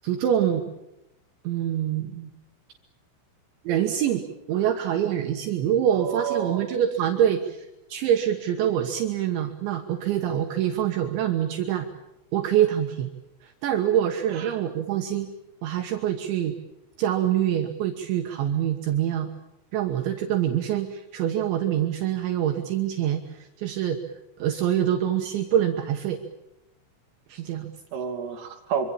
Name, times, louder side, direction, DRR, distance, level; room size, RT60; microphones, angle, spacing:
voice 1, 0.0-0.6 1.4-2.3 3.6-11.9 12.3-13.1 13.4-15.3 15.6-16.6 17.0-19.3 19.7-24.0 24.4-26.2 27.3-27.7, right 10 dB, 70° right, 4 dB, 3.4 m, -25 dB
voice 2, 5.9-6.7 14.3-14.6 27.9-28.9, right 7 dB, 45° right, 2 dB, 3.7 m, -30 dB
26.0 x 25.0 x 7.3 m, 0.91 s
omnidirectional pair, 5.8 m